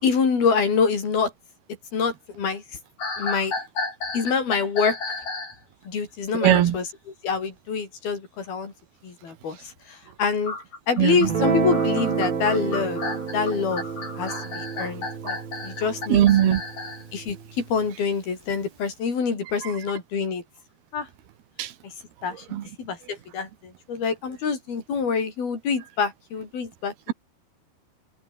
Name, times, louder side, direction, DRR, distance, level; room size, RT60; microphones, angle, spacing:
voice 1, 0.0-1.3 1.9-2.6 3.2-3.5 4.1-5.0 5.9-8.7 9.0-10.6 10.9-13.0 13.3-13.8 14.2-15.4 15.6-16.6 17.1-20.4 20.9-21.1 21.8-21.9 22.2-26.9, left 5 dB, 75° left, 7.0 m, -26 dB
sound 1, 3.0-5.6 10.4-17.0, left 3 dB, 45° left, 9.3 m, -33 dB
voice 2, 6.4-6.8 11.0-11.3 16.1-16.6 21.6-21.7 22.5-22.6, right 12 dB, 85° right, 3.6 m, -19 dB
Guitar, 11.2-17.8, right 6 dB, 65° right, 6.1 m, -29 dB
omnidirectional pair, 4.4 m